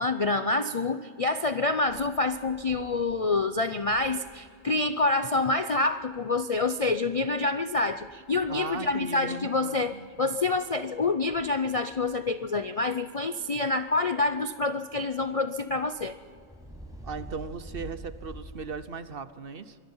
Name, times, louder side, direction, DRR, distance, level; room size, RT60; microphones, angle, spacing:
voice 1, 0.0-9.9 10.2-16.1, left 3 dB, 45° left, 10 dB, 0.4 m, -27 dB
sound 1, 1.8-18.8, right 1 dB, 5° right, 5.8 m, -51 dB
voice 2, 8.5-10.4 17.0-19.8, right 5 dB, 50° right, 13 dB, 0.9 m, -38 dB
25.0 x 21.0 x 5.6 m, 2.2 s
omnidirectional pair, 1.3 m